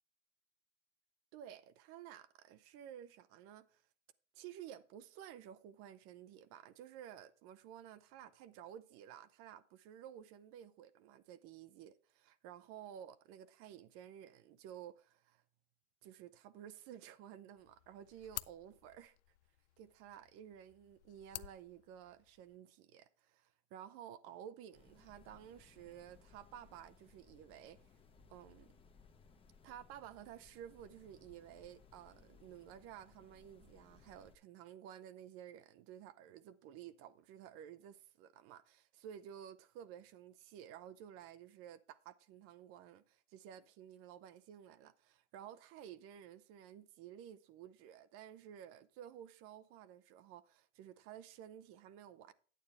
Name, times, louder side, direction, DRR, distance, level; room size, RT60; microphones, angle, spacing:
voice 1, 1.3-3.8 4.3-15.4 16.0-19.2 19.8-27.8 28.3-28.7 29.6-52.3, right 10 dB, 40° right, 0.7 m, -53 dB
sound 1, 17.6-22.6, left 17 dB, 65° left, 0.6 m, -52 dB
sound 2, 24.7-34.4, left 5 dB, 15° left, 1.1 m, -64 dB
9.2 x 9.2 x 3.4 m
supercardioid pair, 130°, 37 cm